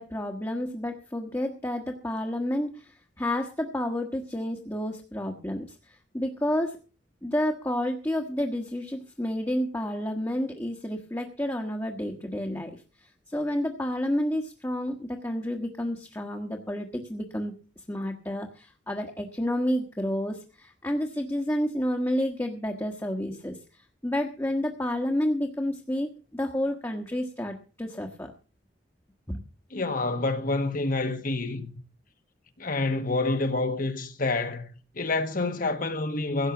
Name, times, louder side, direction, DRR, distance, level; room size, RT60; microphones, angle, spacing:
voice 1, 0.0-6.8 7.2-12.8 13.3-17.5 17.9-23.6 24.0-28.3 29.3-29.4, left 1 dB, 15° left, 1.4 m, -30 dB
voice 2, 29.7-31.7 32.6-34.7 34.9-36.5, left 2 dB, 50° left, 1.4 m, -28 dB
16.5 x 7.3 x 7.1 m
head